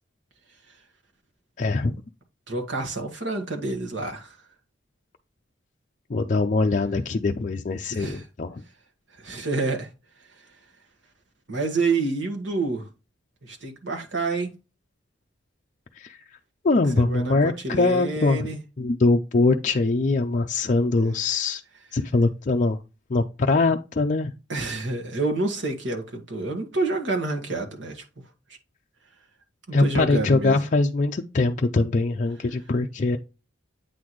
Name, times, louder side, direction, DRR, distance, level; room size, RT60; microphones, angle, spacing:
voice 1, 1.6-2.0 6.1-8.6 16.6-18.5 18.8-21.6 21.9-22.8 23.1-24.3 29.7-33.2, left 3 dB, 40° left, 0.4 m, -22 dB
voice 2, 2.5-4.4 7.9-8.2 9.2-9.9 11.5-12.9 13.4-14.5 16.9-18.6 24.5-28.0 29.7-30.6, right 3 dB, 85° right, 1.6 m, -28 dB
8.5 x 4.1 x 3.0 m
head